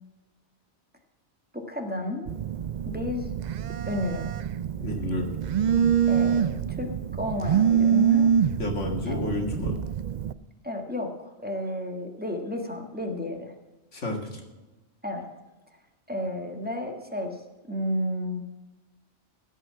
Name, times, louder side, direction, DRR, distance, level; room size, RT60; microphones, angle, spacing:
voice 1, 1.5-2.3 2.8-3.3 3.8-4.3 6.1-8.3 9.1-9.2 10.6-13.5 15.0-15.3 16.1-17.4 17.7-18.4, left 1 dB, 10° right, 3 dB, 1.6 m, -32 dB
Telephone, 2.3-10.3, right 8 dB, 65° right, 0.4 m, -25 dB
voice 2, 4.8-5.3 8.6-9.8 13.9-14.4, left 1 dB, 80° left, 2 dB, 2.6 m, -30 dB
16.0 x 5.6 x 7.1 m, 1.1 s
omnidirectional pair, 1.2 m